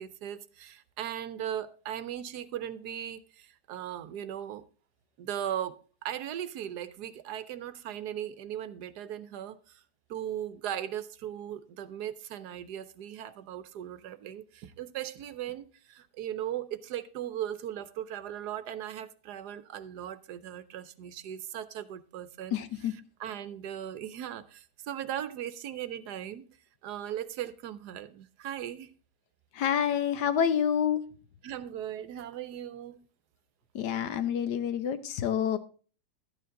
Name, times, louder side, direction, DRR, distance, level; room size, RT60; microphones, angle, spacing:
voice 1, 0.0-4.6 5.2-9.8 10.1-22.6 23.2-26.4 26.8-28.9 31.4-33.0, right 10 dB, 70° right, 1.2 m, -38 dB
voice 2, 22.5-23.0 29.5-31.0 33.7-35.6, left 8 dB, 75° left, 1.5 m, -28 dB
12.5 x 9.3 x 3.7 m
omnidirectional pair, 1.9 m